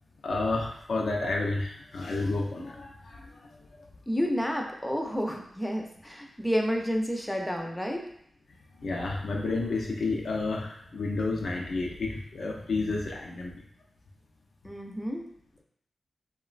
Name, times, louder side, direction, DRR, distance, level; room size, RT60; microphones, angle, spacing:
voice 1, 0.2-3.6 8.8-13.6, left 3 dB, 75° left, -1 dB, 0.4 m, -31 dB
voice 2, 4.1-8.0 14.6-15.3, equal, 10° left, 1 dB, 0.5 m, -30 dB
2.9 x 2.1 x 2.4 m, 0.68 s
cardioid pair, 45°, 0 cm